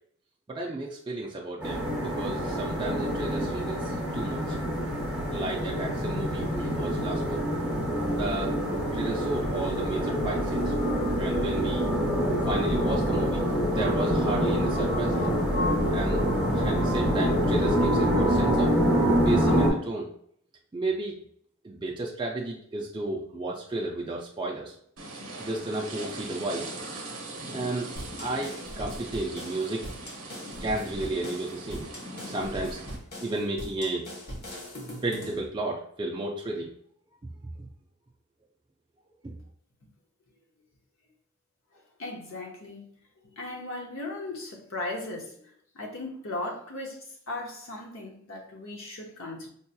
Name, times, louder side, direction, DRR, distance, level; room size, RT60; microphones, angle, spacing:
voice 1, 0.5-4.6 5.3-7.4 8.1-8.5 8.9-10.7 11.2-11.8 12.4-13.4 13.7-15.3 15.9-16.2 16.5-18.7 19.2-20.1 20.7-21.2 21.6-24.7 25.4-26.7 27.5-27.9 28.2-29.8 30.6-31.9 32.3-32.8 33.2-34.1 35.0-36.7 37.6-37.7 39.2-39.3, right 2 dB, 20° right, -2 dB, 0.3 m, -33 dB
sound 1, 1.6-19.7, equal, 5° right, 0.8 m, -26 dB
sound 2, 25.0-33.0, right 2 dB, 65° right, 0.7 m, -40 dB
sound 3, 28.0-35.5, equal, 45° left, 0.9 m, -41 dB
voice 2, 41.7-42.9 43.4-49.5, left 2 dB, 70° left, 0 dB, 0.9 m, -37 dB
4.6 x 2.8 x 2.2 m, 0.65 s
head